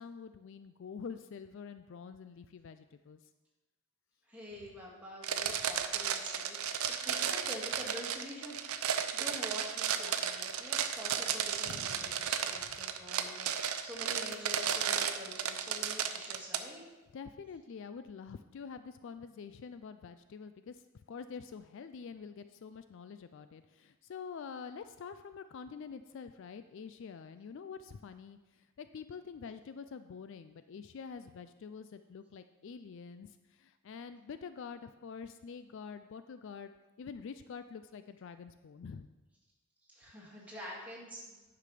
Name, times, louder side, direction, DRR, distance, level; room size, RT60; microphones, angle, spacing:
voice 1, 0.0-3.2 5.5-5.6 11.6-12.2 17.1-20.8 21.1-36.7 37.0-39.1, left 6 dB, 55° left, 11 dB, 0.3 m, -46 dB
voice 2, 4.2-8.6 8.9-16.8 39.9-41.4, equal, 5° right, -5 dB, 2.2 m, -47 dB
sound 1, 5.2-16.6, right 8 dB, 75° right, 0.6 m, -34 dB
9.9 x 5.9 x 4.9 m, 1.1 s
head